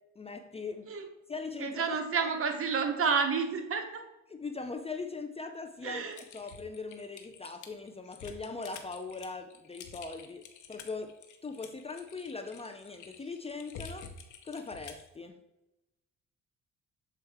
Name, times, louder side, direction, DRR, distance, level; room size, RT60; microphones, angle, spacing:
voice 1, 0.2-0.9 1.3-2.3 4.3-6.0 6.3-11.1 11.4-14.1 14.4-15.4, left 4 dB, 20° left, 6 dB, 0.4 m, -40 dB
voice 2, 1.6-4.0 5.8-6.2, right 5 dB, 45° right, 5 dB, 1.0 m, -30 dB
Typing, 6.1-15.1, left 6 dB, 75° left, 0.8 m, -49 dB
7.1 x 4.4 x 3.4 m, 0.95 s
cardioid pair, 90°, 30 cm